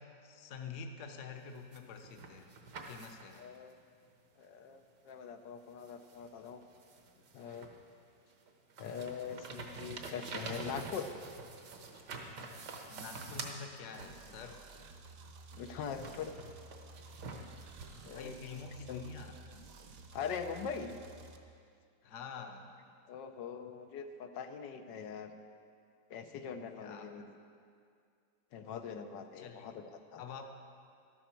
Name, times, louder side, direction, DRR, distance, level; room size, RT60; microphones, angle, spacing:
voice 1, 0.0-3.5 12.9-14.6 18.1-19.4 22.0-22.7 26.8-27.1 29.4-29.7 30.2-30.5, left 5 dB, 55° left, 5 dB, 1.0 m, -47 dB
sound 1, 1.5-3.5 5.1-5.2 5.8-7.9 8.3-14.5 15.5-17.9, right 4 dB, 75° right, 1.6 m, -47 dB
voice 2, 3.4-3.8 4.4-6.6 7.3-7.7 8.8-11.1 15.5-16.3 18.0-18.4 18.9-19.0 20.1-21.0 23.1-25.3 26.1-27.4 28.5-30.2, left 6 dB, 85° left, 6 dB, 1.4 m, -42 dB
sound 2, 14.0-21.4, right 3 dB, 60° right, 1.1 m, -53 dB
12.5 x 12.0 x 4.5 m, 2.3 s
omnidirectional pair, 1.9 m